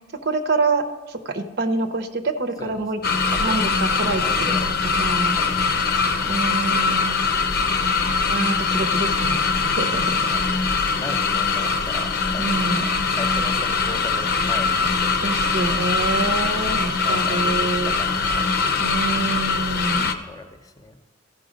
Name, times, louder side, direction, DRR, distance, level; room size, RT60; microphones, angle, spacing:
voice 1, 0.2-3.0 3.4-4.2 5.0-5.4 6.3-7.3 8.3-10.2 12.4-12.9 15.2-17.9 18.8-20.1, right 3 dB, 60° right, 8 dB, 0.7 m, -26 dB
voice 2, 2.6-3.6 4.0-4.8 5.3-6.4 9.9-15.9 17.0-18.9 20.2-21.0, left 2 dB, 20° left, 6 dB, 0.7 m, -38 dB
sound 1, 3.0-20.1, left 4 dB, 55° left, 0.7 m, -22 dB
14.5 x 5.7 x 5.1 m, 1.3 s
head